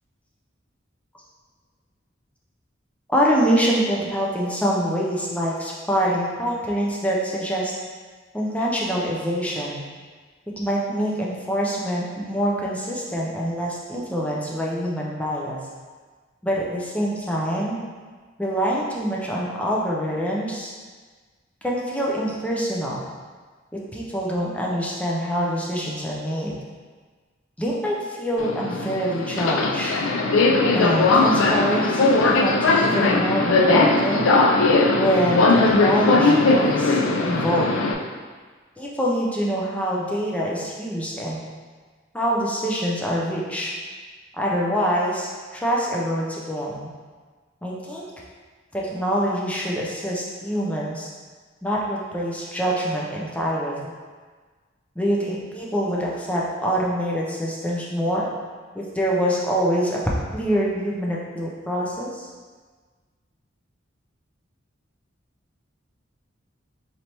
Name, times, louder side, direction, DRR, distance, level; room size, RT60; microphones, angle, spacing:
voice 1, 3.1-7.7 8.3-9.8 10.6-15.6 16.4-17.8 18.4-20.7 21.6-23.0 23.7-26.5 27.6-30.0 30.7-34.3 35.0-37.7 38.8-41.4 42.1-43.7 44.3-46.9 47.6-48.1 48.7-51.1 51.6-53.9 55.0-58.3 58.7-60.0 60.3-62.3, equal, 5° left, -4 dB, 0.5 m, -25 dB
Subway metro underground, 28.4-37.9, left 3 dB, 85° left, 0.4 m, -19 dB
4.0 x 3.3 x 2.9 m, 1.5 s
head